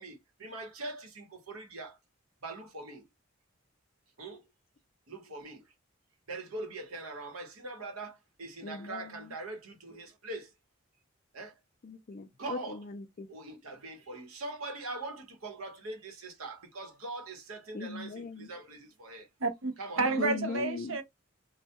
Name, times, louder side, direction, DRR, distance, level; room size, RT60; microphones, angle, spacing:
voice 1, 0.0-2.0 2.4-3.0 4.2-4.4 5.1-5.6 6.3-10.5 11.3-11.6 12.4-12.8 13.3-19.3 19.8-20.2, right 2 dB, 85° right, 1.0 m, -42 dB
voice 2, 8.6-9.3 11.8-13.3 17.7-18.5 20.2-21.0, left 4 dB, 40° left, 0.3 m, -39 dB
voice 3, 19.4-21.0, right 3 dB, 70° right, 0.6 m, -30 dB
2.2 x 2.2 x 2.8 m
head